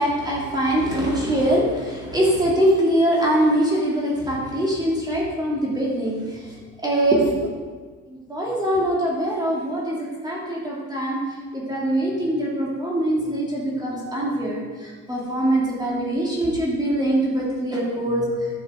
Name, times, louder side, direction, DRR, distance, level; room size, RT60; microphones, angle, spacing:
voice 1, 0.0-6.4 6.8-7.5 8.1-10.0 10.2-11.2 11.5-18.3, right 1 dB, 15° right, -5 dB, 2.3 m, -23 dB
11.0 x 6.0 x 4.3 m, 1.5 s
cardioid pair, 115°, 30 cm